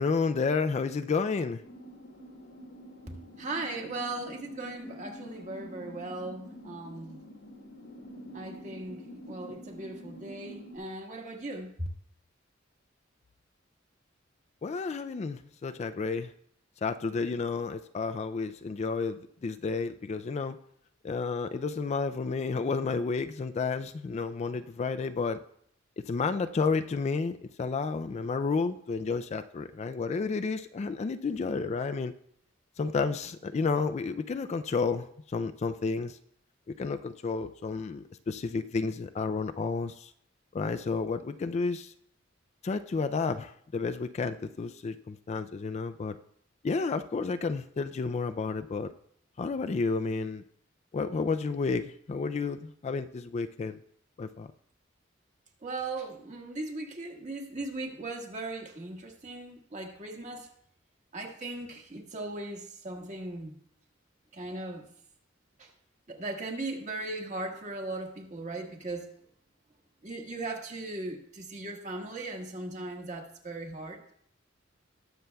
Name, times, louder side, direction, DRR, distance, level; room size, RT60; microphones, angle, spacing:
voice 1, 0.0-1.6 14.6-16.3 16.8-20.6 21.0-25.4 26.1-32.1 32.8-36.2 36.8-40.1 40.5-41.9 42.6-46.2 46.6-48.9 49.4-50.4 50.9-53.8 54.2-54.5, left 4 dB, 35° left, 10 dB, 0.3 m, -31 dB
sound 1, 1.6-10.8, left 1 dB, 90° left, 2.0 m, -47 dB
voice 2, 3.4-7.2 8.3-11.9 55.6-60.5 61.1-63.6 64.3-64.9 65.6-65.7 66.1-69.1 70.0-74.0, right 2 dB, 40° right, 1 dB, 1.5 m, -38 dB
19.5 x 6.9 x 2.3 m, 0.67 s
head